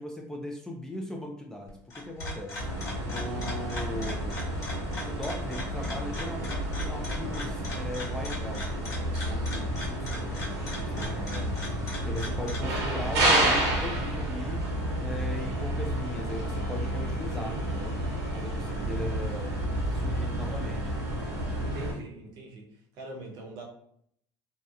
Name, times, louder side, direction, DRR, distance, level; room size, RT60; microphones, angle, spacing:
voice 1, 0.0-2.7 3.1-4.5 5.0-11.5 12.1-14.6 15.0-18.0 18.3-19.5 19.9-21.0, left 1 dB, 5° left, 0 dB, 0.3 m, -39 dB
sound 1, 1.7-12.8, left 2 dB, 35° left, 1.1 m, -40 dB
sound 2, 2.6-21.9, right 1 dB, 90° right, 1.1 m, -30 dB
voice 2, 21.6-22.7 23.0-23.6, right 1 dB, 55° right, 0 dB, 0.7 m, -42 dB
2.7 x 2.1 x 2.4 m, 0.67 s
supercardioid pair, 125°, 9 cm